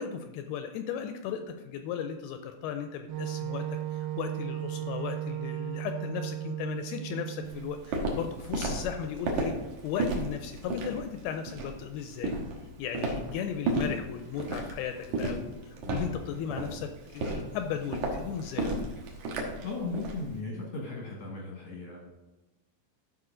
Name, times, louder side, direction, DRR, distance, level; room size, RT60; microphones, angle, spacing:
voice 1, 0.0-9.5 9.8-12.4 12.8-18.9, left 8 dB, 80° left, 7 dB, 2.3 m, -36 dB
Wind instrument woodwind instrument, 3.1-7.8, right 13 dB, 85° right, 2.5 m, -35 dB
Walk footsteps, 7.4-20.2, right 2 dB, 65° right, 2.0 m, -33 dB
voice 2, 19.6-22.1, left 3 dB, 65° left, -2 dB, 1.5 m, -37 dB
13.5 x 5.0 x 3.8 m, 1.1 s
omnidirectional pair, 4.9 m